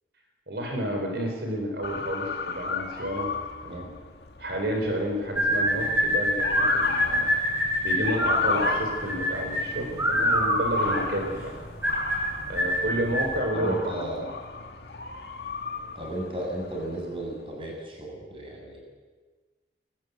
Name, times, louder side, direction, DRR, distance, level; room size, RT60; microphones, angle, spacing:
voice 1, 0.5-3.3 3.6-3.9 4.4-7.3 7.8-11.6 12.5-14.2, equal, 75° right, 2 dB, 4.1 m, -30 dB
Motor vehicle (road) / Siren, 1.8-17.4, left 4 dB, 75° left, 2.0 m, -35 dB
sound 1, 5.4-13.4, equal, 15° right, 7.0 m, -25 dB
voice 2, 13.5-14.3 15.9-18.8, right 1 dB, 30° right, 0 dB, 7.2 m, -34 dB
21.0 x 19.5 x 8.2 m, 1.4 s
head